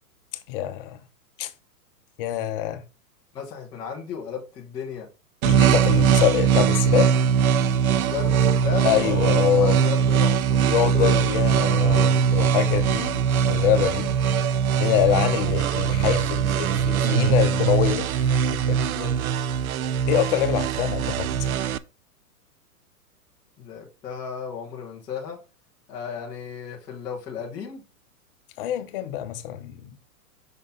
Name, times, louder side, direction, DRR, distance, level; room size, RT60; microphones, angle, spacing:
voice 1, 0.5-1.0 1.4-1.5 2.2-2.8 5.4-7.1 8.8-9.8 10.7-14.1 14.8-18.8 20.1-21.5 28.6-29.9, left 11 dB, 35° left, 0.8 m, -25 dB
voice 2, 3.3-5.1 5.6-6.3 7.9-11.2 11.7-12.1 18.7-19.2 23.6-25.4 25.9-27.8, left 7 dB, 5° left, 0.4 m, -34 dB
sound 1, 5.4-21.8, right 7 dB, 65° right, 0.6 m, -21 dB
5.6 x 3.9 x 5.0 m
hypercardioid pair, 135°, 47 cm